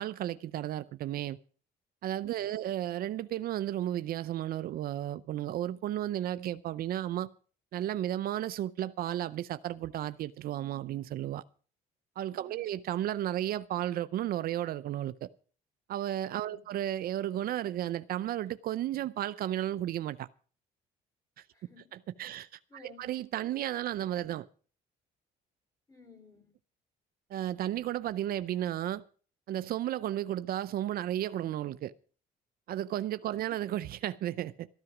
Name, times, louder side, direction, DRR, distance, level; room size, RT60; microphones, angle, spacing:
voice 1, 0.0-1.4 2.0-7.3 7.7-11.4 12.2-15.3 15.9-20.3 22.2-24.5 27.3-29.0 29.5-31.9 32.7-34.7, right 12 dB, 60° right, 0.6 m, -33 dB
voice 2, 2.4-2.7 12.4-12.8 16.5-16.7 21.5-21.9 22.7-23.1 25.9-26.5, left 4 dB, 20° left, 4.2 m, -56 dB
13.5 x 11.0 x 6.0 m
cardioid pair, 110°, 17 cm